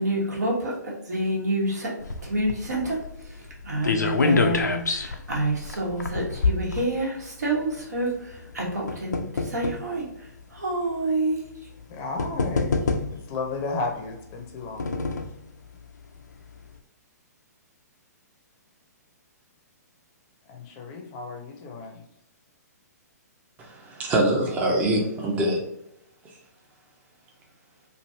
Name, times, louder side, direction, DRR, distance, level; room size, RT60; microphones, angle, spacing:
voice 1, 0.0-1.9 2.2-11.4, right 1 dB, 70° right, -2 dB, 1.2 m, -28 dB
sound 1, 2.0-7.5 8.3-9.9 10.7-10.8 11.8-11.9 12.2-13.4 14.3-15.4 15.8-15.9 16.2-16.3, left 3 dB, 80° left, 0.4 m, -27 dB
voice 2, 11.9-12.8 13.1-14.9 20.5-21.9, left 3 dB, 30° left, 1 dB, 0.6 m, -33 dB
voice 3, 23.6-25.6, right 1 dB, 15° right, -1 dB, 0.6 m, -24 dB
3.0 x 2.5 x 2.7 m, 0.81 s
figure-of-eight pair, 120°, 9 cm